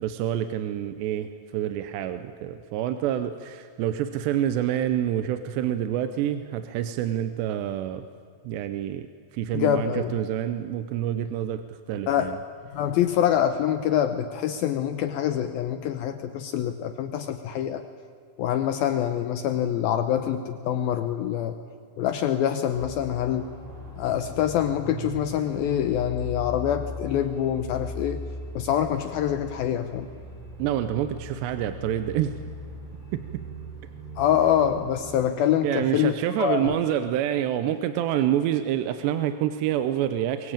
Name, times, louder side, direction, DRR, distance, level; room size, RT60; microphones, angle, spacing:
voice 1, 0.0-8.1 8.4-9.1 9.3-12.4 30.6-32.4 33.1-33.4 35.6-40.5, right 11 dB, 80° right, 10 dB, 2.8 m, -27 dB
voice 2, 9.5-10.2 12.1-12.3 12.7-17.8 18.4-21.6 22.0-23.5 24.0-28.2 28.5-30.1 34.2-36.8, left 10 dB, 80° left, 9 dB, 2.2 m, -25 dB
sound 1, 22.7-35.3, equal, 30° right, 7.8 m, -39 dB
23.0 x 22.5 x 8.9 m, 2.2 s
omnidirectional pair, 5.2 m